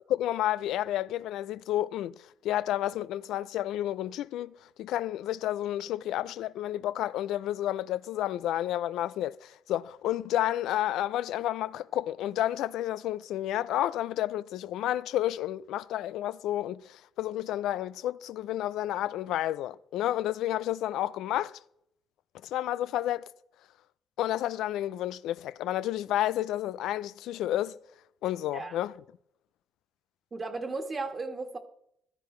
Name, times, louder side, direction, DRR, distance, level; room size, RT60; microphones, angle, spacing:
voice 1, 0.1-21.6 22.4-23.3 24.2-27.8 28.2-28.9, left 13 dB, 85° left, 0.4 m, -31 dB
voice 2, 30.3-31.6, right 3 dB, 35° right, 1.6 m, -35 dB
15.0 x 12.5 x 3.2 m
cardioid pair, 90°, 0 cm